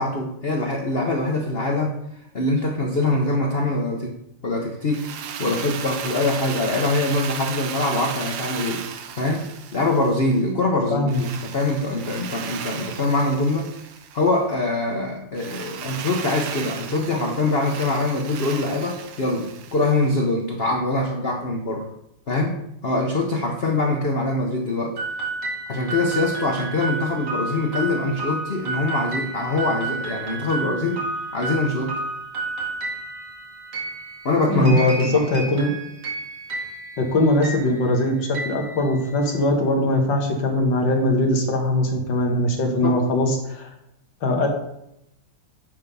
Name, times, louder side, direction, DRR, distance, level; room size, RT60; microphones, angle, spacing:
voice 1, 0.0-2.0 2.3-4.1 4.4-5.1 5.4-8.8 9.2-9.4 9.7-13.7 14.1-21.9 22.3-24.9 25.7-31.0 31.3-31.9 34.2-35.2 42.6-43.0, left 2 dB, 80° left, 1 dB, 0.5 m, -23 dB
Drill, 4.9-10.4 11.1-14.4 15.3-20.1, right 7 dB, 75° right, 0.9 m, -35 dB
voice 2, 10.9-11.2 34.5-35.7 37.1-43.7 44.2-44.5, left 1 dB, 60° left, 2 dB, 1.8 m, -21 dB
sound 1, 25.0-39.4, right 3 dB, 50° right, 2.2 m, -31 dB
10.0 x 3.5 x 5.4 m, 0.81 s
omnidirectional pair, 2.4 m